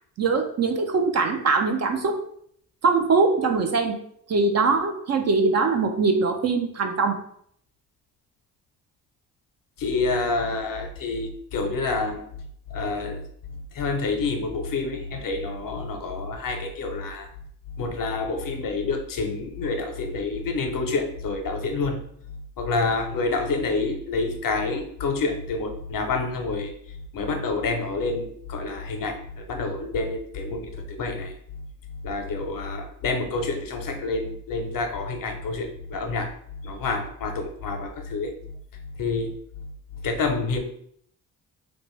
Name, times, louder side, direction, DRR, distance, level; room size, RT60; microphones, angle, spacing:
voice 1, 0.2-2.2 2.8-3.9 4.3-7.2, right 4 dB, 40° right, 5 dB, 0.4 m, -22 dB
voice 2, 9.8-12.2 12.7-13.2 13.7-17.3 17.8-22.0 22.6-26.7 27.1-31.3 32.0-36.3 36.6-38.3 39.0-39.3 40.0-40.6, left 3 dB, 55° left, 5 dB, 0.6 m, -28 dB
2.5 x 2.2 x 3.0 m, 0.67 s
supercardioid pair, 55°, 41 cm